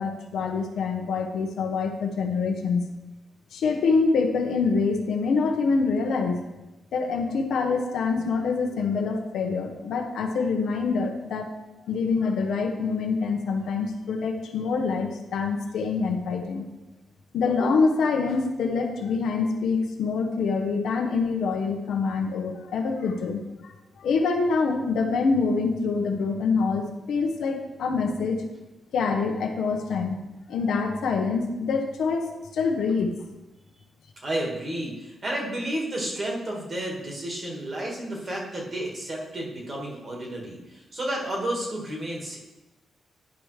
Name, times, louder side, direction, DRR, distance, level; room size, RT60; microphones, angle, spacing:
voice 1, 0.0-2.9 3.5-6.4 6.9-11.5 11.8-16.7 17.3-23.4 24.0-28.4 28.9-30.2 30.5-33.2, left 4 dB, 80° left, 3 dB, 0.8 m, -25 dB
voice 2, 34.2-42.4, right 1 dB, 30° right, -2 dB, 1.6 m, -31 dB
10.5 x 5.0 x 3.2 m, 1.0 s
wide cardioid pair, 155°, 0 cm